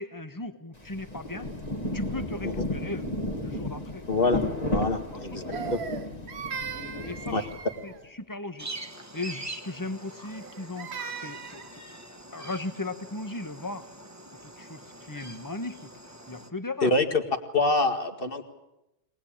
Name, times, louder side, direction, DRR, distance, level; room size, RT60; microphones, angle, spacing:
voice 1, 0.0-1.5 1.9-4.1 4.7-5.8 6.7-7.5 7.8-8.7 9.1-10.9 11.2-11.8 12.3-13.9 14.4-15.9 16.3-16.9, left 2 dB, 15° left, 9 dB, 1.3 m, -37 dB
Rain, 0.8-8.0, left 1 dB, 35° left, 2.2 m, -33 dB
voice 2, 4.1-4.4 4.7-5.4 7.3-7.4 16.8-17.2 17.5-18.4, left 2 dB, 50° left, 6 dB, 2.3 m, -25 dB
Crying sobbing, 5.5-8.0 10.3-11.7, right 7 dB, 60° right, 1.2 m, -38 dB
sound 1, 8.6-16.5, right 2 dB, 15° right, 1.5 m, -44 dB
23.0 x 20.0 x 8.8 m, 0.93 s
omnidirectional pair, 1.2 m